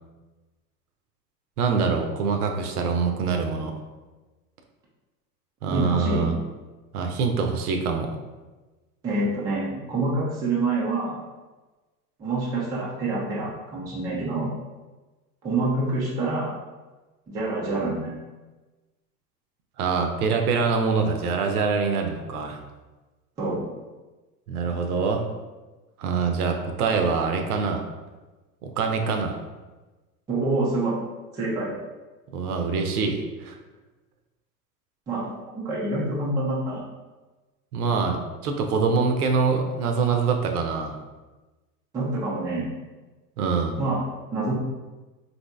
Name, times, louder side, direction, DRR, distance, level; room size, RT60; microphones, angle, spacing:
voice 1, 1.6-3.7 5.6-6.3 6.9-8.1 19.8-22.6 24.5-25.2 26.0-27.8 28.6-29.4 32.3-33.6 37.7-41.0 43.4-43.8, right 5 dB, 65° right, 4 dB, 0.6 m, -24 dB
voice 2, 5.7-6.3 9.0-11.2 12.2-14.5 15.4-16.5 17.3-18.1 23.4-23.7 30.3-31.0 31.3-31.7 35.1-35.3 35.5-36.8 41.9-42.7 43.8-44.0 44.3-44.5, right 2 dB, 10° right, -5 dB, 0.3 m, -26 dB
4.1 x 2.8 x 2.2 m, 1.2 s
figure-of-eight pair, 90°, 50 cm